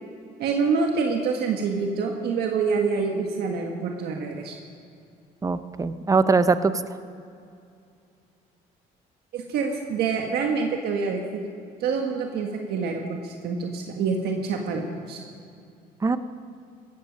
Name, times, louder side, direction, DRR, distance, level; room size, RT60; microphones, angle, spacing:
voice 1, 0.4-4.6 9.3-11.2 11.8-15.2, right 5 dB, 70° right, 2 dB, 1.6 m, -26 dB
voice 2, 5.4-6.7 16.0-16.2, right 4 dB, 20° right, 12 dB, 0.7 m, -21 dB
18.0 x 14.0 x 5.3 m, 2.4 s
cardioid pair, 110°, 17 cm